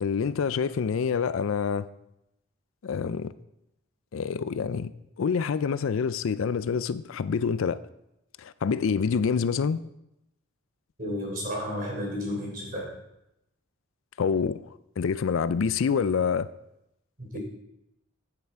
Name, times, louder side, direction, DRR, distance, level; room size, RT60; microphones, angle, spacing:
voice 1, 0.0-1.9 2.8-3.3 4.1-4.9 5.2-7.8 8.4-9.8 14.2-14.6 15.0-16.5, left 6 dB, 70° left, 0.4 m, -26 dB
voice 2, 11.0-12.9 17.2-17.4, equal, 40° right, 3.8 m, -32 dB
9.7 x 8.2 x 4.6 m
head